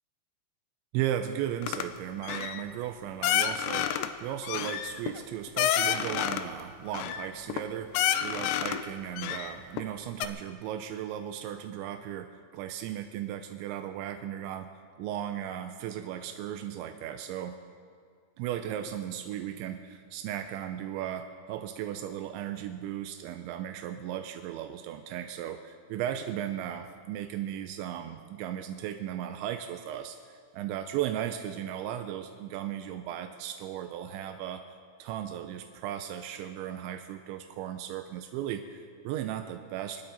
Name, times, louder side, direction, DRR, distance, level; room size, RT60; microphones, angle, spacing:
voice 1, 0.9-3.9 4.2-12.3 12.5-14.7 15.0-17.6 18.4-34.6 35.0-40.0, right 11 dB, 85° right, 7 dB, 2.9 m, -36 dB
sound 1, 1.6-1.9 2.2-2.6 3.2-4.1 4.4-6.5 6.9-7.6 7.9-8.8 9.2-9.9 10.2-10.3, left 10 dB, 85° left, 2.8 m, -29 dB
26.5 x 12.0 x 4.0 m, 2.2 s
omnidirectional pair, 5.3 m